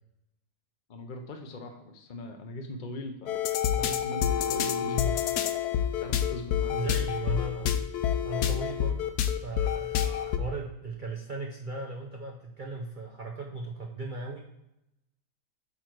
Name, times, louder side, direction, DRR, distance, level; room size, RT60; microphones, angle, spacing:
voice 1, 0.9-3.4 3.7-5.2 6.0-7.0, left 1 dB, 40° left, 4 dB, 0.7 m, -40 dB
sound 1, 3.3-10.4, left 9 dB, 80° left, 1.2 m, -28 dB
voice 2, 4.8-5.1 6.6-7.8 8.2-9.1 9.4-14.4, right 2 dB, 40° right, 1 dB, 0.8 m, -37 dB
9.0 x 4.2 x 4.5 m, 0.88 s
omnidirectional pair, 1.7 m